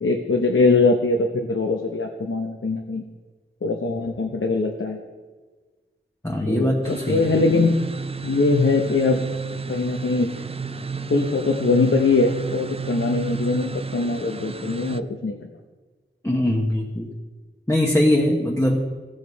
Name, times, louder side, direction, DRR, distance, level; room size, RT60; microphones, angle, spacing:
voice 1, 0.0-3.0 3.6-5.0 6.4-7.8 8.2-9.2 9.7-10.3 11.1-15.5, left 3 dB, 75° left, 3 dB, 0.8 m, -22 dB
voice 2, 6.2-7.3 16.2-17.1 17.7-18.8, left 1 dB, 15° left, -2 dB, 1.0 m, -21 dB
sound 1, 6.8-15.0, right 5 dB, 30° right, 0.3 m, -32 dB
15.5 x 5.1 x 4.1 m, 1.4 s
wide cardioid pair, 60°, 21 cm